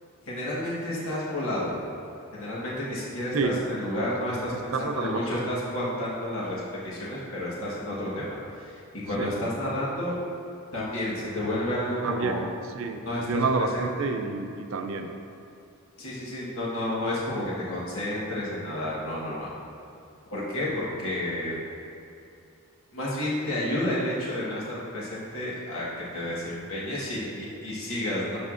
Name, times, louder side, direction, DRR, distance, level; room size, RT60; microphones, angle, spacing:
voice 1, 0.3-1.7 2.3-10.1 10.7-12.4 13.0-14.1 16.0-19.5 20.3-21.6 22.9-28.4, left 1 dB, 75° left, -7 dB, 1.4 m, -31 dB
voice 2, 4.7-5.4 9.2-9.3 12.0-12.5 12.7-15.1, right 4 dB, 70° right, 5 dB, 0.5 m, -29 dB
11.5 x 4.5 x 2.5 m, 2.5 s
head